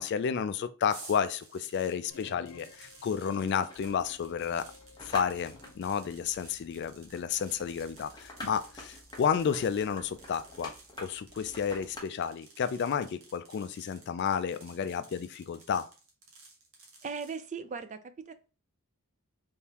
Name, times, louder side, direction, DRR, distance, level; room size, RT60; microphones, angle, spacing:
voice 1, 0.0-4.7 5.0-10.7 11.0-15.9, left 7 dB, 50° left, 0.3 m, -31 dB
sound 1, 0.9-17.4, right 3 dB, 70° right, 1.2 m, -55 dB
sound 2, 2.1-5.8, left 4 dB, 80° left, 0.8 m, -54 dB
sound 3, 3.7-12.0, left 1 dB, 20° left, 0.9 m, -48 dB
voice 2, 17.0-18.3, right 5 dB, 35° right, 0.4 m, -38 dB
3.6 x 3.4 x 2.8 m
head